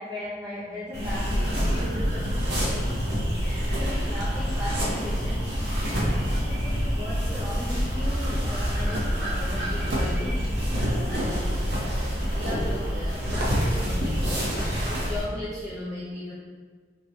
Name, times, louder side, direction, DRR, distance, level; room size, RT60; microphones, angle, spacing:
voice 1, 0.0-3.0 3.4-6.2 6.4-16.3, left 1 dB, 20° right, -9 dB, 0.6 m, -37 dB
sound 1, 0.9-15.2, equal, 70° right, 1.0 m, -26 dB
4.3 x 2.9 x 3.2 m, 1.5 s
head